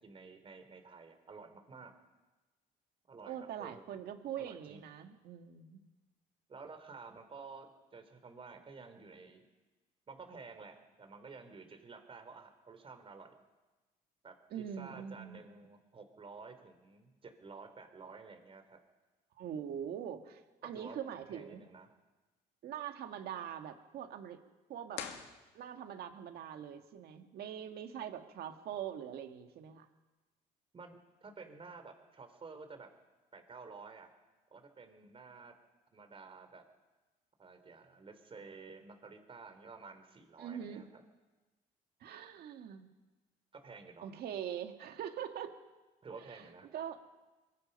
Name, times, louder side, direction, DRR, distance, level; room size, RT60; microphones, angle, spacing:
voice 1, 0.0-1.9 3.1-3.8 4.4-4.8 6.5-9.5 10.1-13.3 14.2-14.4 14.8-18.8 20.7-21.0 21.3-21.9 30.7-32.9 33.3-34.1 34.5-35.5 35.9-36.6 37.4-41.0 43.5-44.0 46.0-46.7, right 4 dB, 35° right, 7 dB, 3.4 m, -51 dB
voice 2, 3.3-5.8 14.5-15.4 19.4-21.6 22.6-24.4 24.7-25.0 25.5-29.9 40.4-40.8 42.0-42.9 44.0-45.5 46.3-46.4 46.7-47.0, right 9 dB, 65° right, 6 dB, 2.0 m, -43 dB
sound 1, 24.9-26.1, left 8 dB, 80° left, 2.1 m, -45 dB
23.0 x 21.5 x 5.5 m, 1.2 s
cardioid pair, 110°, 17 cm